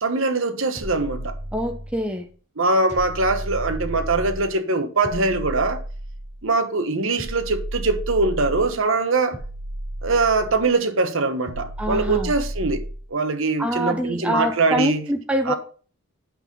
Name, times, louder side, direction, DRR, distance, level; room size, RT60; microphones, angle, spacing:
voice 1, 0.0-1.3 2.6-5.8 6.4-9.4 10.0-12.8 13.1-15.0 15.5-15.6, right 3 dB, 65° right, 1.1 m, -22 dB
sound 1, 0.7-2.1 2.9-4.5 5.0-6.4 7.2-8.8 9.3-10.7 11.5-13.1, right 1 dB, 35° right, 5.2 m, -32 dB
voice 2, 1.5-2.3 11.8-12.3 13.6-15.5, right 1 dB, 5° right, 0.8 m, -25 dB
8.9 x 5.6 x 5.3 m
head